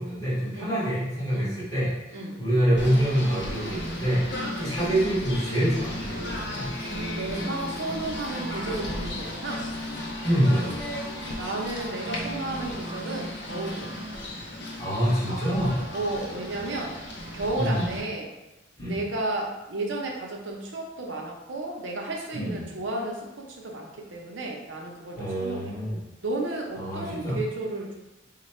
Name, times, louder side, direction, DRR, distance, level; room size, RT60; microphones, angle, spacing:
voice 1, 0.0-4.2 4.6-6.7 10.2-11.0 14.8-15.8 17.6-17.9 18.8-19.0 22.3-22.7 25.2-26.0 26.8-27.4, equal, 20° left, -10 dB, 1.4 m, -26 dB
Singing / Bird, 2.7-18.0, left 1 dB, 60° left, 0.6 m, -35 dB
voice 2, 7.1-9.7 11.4-13.9 15.9-17.0 17.3-18.3 18.9-25.7 26.2-28.0, right 2 dB, 70° right, 0 dB, 0.7 m, -33 dB
3.2 x 2.2 x 4.2 m, 1.0 s
head